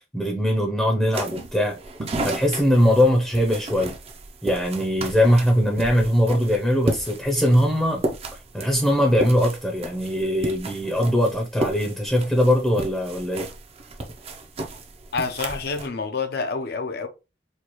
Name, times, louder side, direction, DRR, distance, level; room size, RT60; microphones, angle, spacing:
voice 1, 0.1-1.8 2.2-3.9 4.4-8.0 8.5-13.5, equal, 5° left, 0.7 m, -21 dB
sound 1, 1.1-15.9, right 2 dB, 35° right, 0.6 m, -33 dB
voice 2, 15.1-17.1, left 4 dB, 60° left, 0.7 m, -28 dB
4.4 x 2.4 x 3.0 m
head